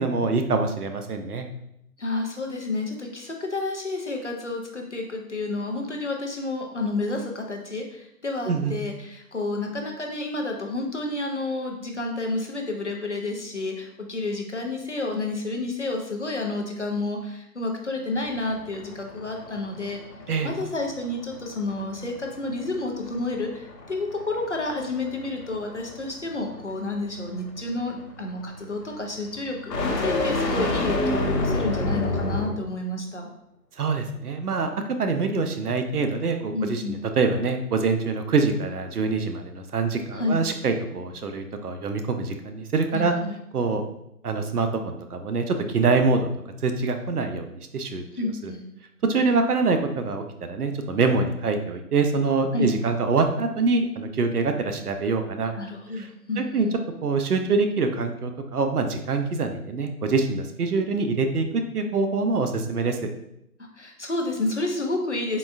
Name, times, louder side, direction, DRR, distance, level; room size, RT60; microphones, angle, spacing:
voice 1, 0.0-1.5 8.5-8.7 20.3-20.5 33.8-43.1 43.5-43.8 44.2-46.3 46.6-48.5 49.0-50.2 50.5-55.5 55.9-56.1 56.4-56.7 57.0-63.0, right 4 dB, 70° right, 6 dB, 0.6 m, -25 dB
voice 2, 2.0-20.0 20.4-33.3 36.5-37.0 40.1-40.4 42.9-43.4 48.1-48.6 52.5-52.7 55.5-56.7 63.7-65.4, left 2 dB, 50° left, 2 dB, 0.5 m, -30 dB
sound 1, 18.1-32.7, left 2 dB, 85° left, 1.0 m, -30 dB
3.9 x 3.7 x 2.3 m, 0.78 s
hypercardioid pair, 175°, 48 cm